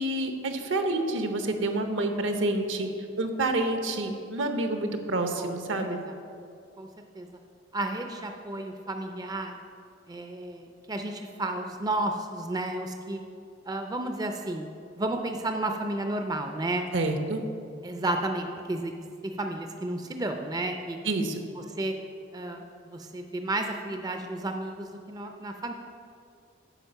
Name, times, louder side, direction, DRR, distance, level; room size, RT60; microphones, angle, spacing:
voice 1, 0.0-2.9 3.2-6.0 16.9-17.4 21.0-21.4, right 2 dB, 75° right, 6 dB, 0.8 m, -28 dB
voice 2, 7.7-9.5 10.1-13.2 13.7-14.7 14.9-16.8 17.8-21.0 21.6-21.9 22.3-25.7, right 2 dB, 20° right, 5 dB, 0.4 m, -32 dB
9.0 x 5.1 x 6.5 m, 2.4 s
head